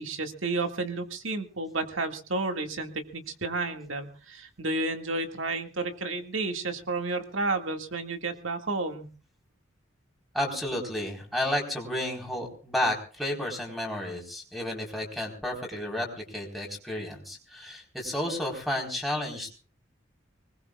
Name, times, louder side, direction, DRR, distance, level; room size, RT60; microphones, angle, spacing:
voice 1, 0.0-9.1, right 3 dB, 75° right, 5 dB, 2.1 m, -31 dB
voice 2, 10.3-19.5, left 1 dB, ahead, 1 dB, 4.3 m, -32 dB
24.5 x 20.0 x 2.4 m, 0.37 s
head